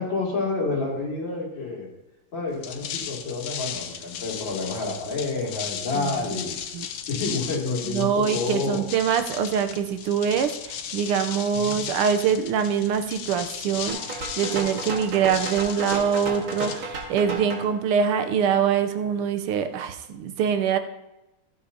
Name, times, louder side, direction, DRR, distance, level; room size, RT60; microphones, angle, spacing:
voice 1, 0.0-1.9 2.3-6.5 7.1-8.8 11.5-11.8, left 3 dB, 60° left, -3 dB, 3.5 m, -29 dB
sound 1, 2.5-17.3, left 8 dB, 80° left, 1.7 m, -36 dB
voice 2, 5.9-6.4 6.7-6.9 7.8-20.8, right 7 dB, 80° right, 8 dB, 1.7 m, -24 dB
sound 2, 13.9-17.6, right 3 dB, 60° right, 2.5 m, -33 dB
15.0 x 10.0 x 2.8 m, 0.96 s
omnidirectional pair, 2.4 m